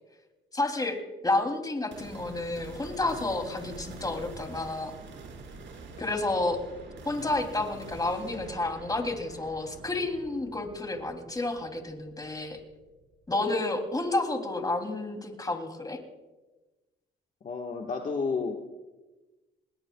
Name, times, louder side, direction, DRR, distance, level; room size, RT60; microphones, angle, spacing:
voice 1, 0.5-4.9 6.0-6.6 7.0-12.6 13.3-16.0, left 2 dB, 20° left, 4 dB, 2.9 m, -30 dB
sound 1, 1.9-13.3, right 4 dB, 65° right, 4.7 m, -46 dB
voice 2, 17.4-18.7, left 4 dB, 40° left, 1 dB, 1.5 m, -31 dB
28.0 x 20.0 x 2.3 m, 1.2 s
cardioid pair, 90°, 20 cm